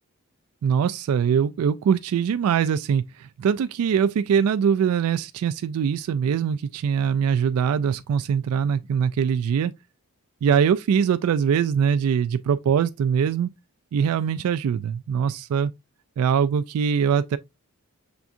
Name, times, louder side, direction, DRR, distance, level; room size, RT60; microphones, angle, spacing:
voice 1, 0.6-9.7 10.4-13.5 13.9-15.7 16.2-17.4, right 7 dB, 80° right, 0.3 m, -22 dB
5.9 x 3.5 x 2.6 m
head